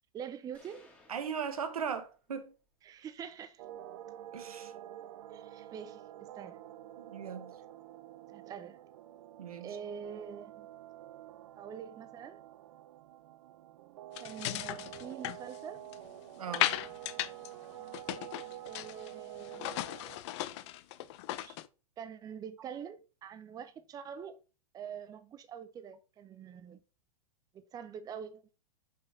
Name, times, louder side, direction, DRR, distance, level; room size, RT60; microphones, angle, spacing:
voice 1, 0.1-0.9 2.8-3.6 5.3-6.0 6.3-6.6 8.3-8.8 9.6-10.7 11.5-12.4 14.2-15.9 18.7-19.7 21.4-21.6 22.0-24.4 24.7-26.8 27.5-28.4, right 7 dB, 20° right, 0.6 m, -45 dB
sound 1, 0.5-2.5, left 2 dB, 5° left, 1.8 m, -63 dB
voice 2, 1.1-2.5 4.3-4.7 7.0-7.5 9.4-9.8 16.3-16.7, right 7 dB, 85° right, 1.2 m, -38 dB
sound 2, 3.6-20.2, right 13 dB, 60° right, 0.6 m, -48 dB
sound 3, 14.2-16.1 16.5-17.5 17.7-19.1 19.4-21.7, left 15 dB, 50° left, 0.6 m, -36 dB
5.5 x 4.0 x 5.2 m
hypercardioid pair, 120°, 18 cm